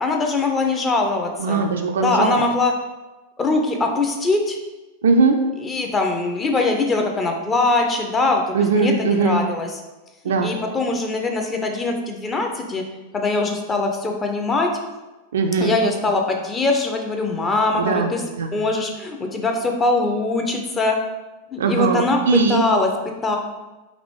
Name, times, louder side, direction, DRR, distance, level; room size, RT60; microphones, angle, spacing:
voice 1, 0.0-1.6 2.0-2.7 3.4-4.6 5.6-9.8 10.4-12.8 13.1-14.7 15.6-18.2 18.5-21.0 21.5-22.2 22.5-22.9 23.2-23.4, left 3 dB, 20° left, 2 dB, 0.6 m, -22 dB
voice 2, 1.4-2.3 5.0-5.4 8.5-9.4 10.2-10.5 15.3-15.8 17.7-18.6 21.6-22.6, right 4 dB, 65° right, 4 dB, 0.3 m, -20 dB
3.9 x 3.0 x 3.3 m, 1.1 s
figure-of-eight pair, 90°, 0 cm